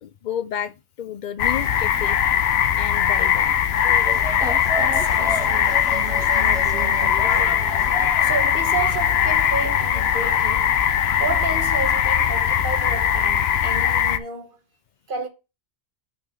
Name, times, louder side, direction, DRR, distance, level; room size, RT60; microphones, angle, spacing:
voice 1, 0.0-2.2 2.8-3.5, left 9 dB, 55° left, 0.6 m, -31 dB
sound 1, 1.4-14.2, left 9 dB, 90° left, 0.9 m, -20 dB
sound 2, 3.7-8.5 8.8-9.5 9.9-10.4, equal, 5° right, 1.3 m, -33 dB
voice 2, 4.7-7.7 8.2-10.8 11.2-14.6 15.1-15.3, right 4 dB, 60° right, 1.4 m, -31 dB
6.1 x 4.5 x 6.3 m
omnidirectional pair, 1.0 m